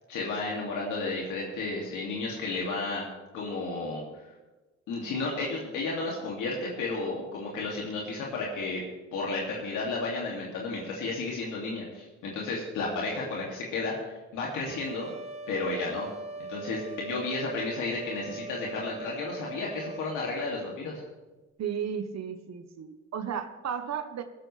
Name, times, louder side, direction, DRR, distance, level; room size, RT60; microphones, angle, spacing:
voice 1, 0.1-3.0 3.3-4.3 4.9-8.8 9.1-15.1 15.5-16.1 16.5-21.0, left 3 dB, 90° left, -3 dB, 2.6 m, -32 dB
sound 1, 14.5-20.5, right 3 dB, 20° right, 1.3 m, -41 dB
voice 2, 21.6-24.2, right 8 dB, 60° right, 9 dB, 1.1 m, -34 dB
17.5 x 14.5 x 3.3 m, 1.2 s
cardioid pair, 90°, 30 cm